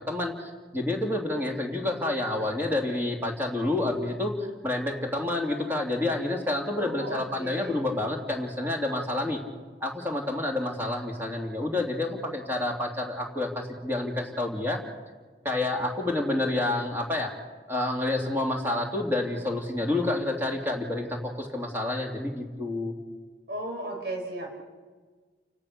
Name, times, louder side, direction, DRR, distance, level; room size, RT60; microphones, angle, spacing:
voice 1, 0.1-4.3 4.6-9.4 9.8-14.8 15.4-17.3 17.7-22.9, left 2 dB, 10° right, 0 dB, 2.9 m, -29 dB
voice 2, 6.7-7.8 23.5-24.5, right 1 dB, 60° right, 1 dB, 6.3 m, -35 dB
29.5 x 17.5 x 6.7 m, 1.4 s
head